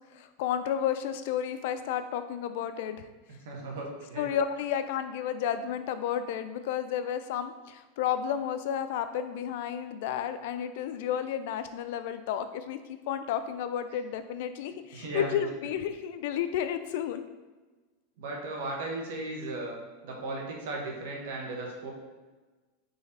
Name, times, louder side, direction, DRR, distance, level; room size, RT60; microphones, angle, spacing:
voice 1, 0.1-3.1 4.2-17.3, left 9 dB, 65° left, 10 dB, 0.4 m, -32 dB
voice 2, 3.4-4.3 14.9-15.5 18.2-19.8 20.0-21.9, right 2 dB, 75° right, -1 dB, 1.2 m, -36 dB
3.9 x 3.3 x 4.2 m, 1.3 s
supercardioid pair, 135°, 0 cm